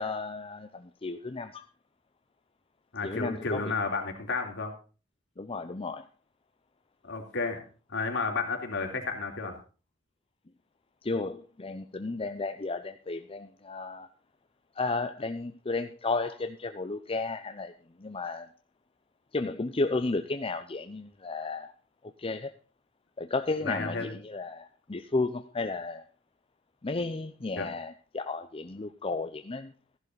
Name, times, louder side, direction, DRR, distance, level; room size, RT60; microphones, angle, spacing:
voice 1, 0.0-1.6 3.0-3.6 5.4-6.1 11.0-14.1 14.8-17.7 18.0-18.5 19.3-21.7 22.2-22.5 23.2-26.0 26.8-29.7, left 3 dB, 30° left, 8 dB, 0.6 m, -33 dB
voice 2, 2.9-4.7 7.0-7.6 7.9-9.5 23.6-24.2 27.6-27.7, left 4 dB, 60° left, 3 dB, 3.4 m, -32 dB
15.0 x 11.5 x 4.0 m, 0.36 s
head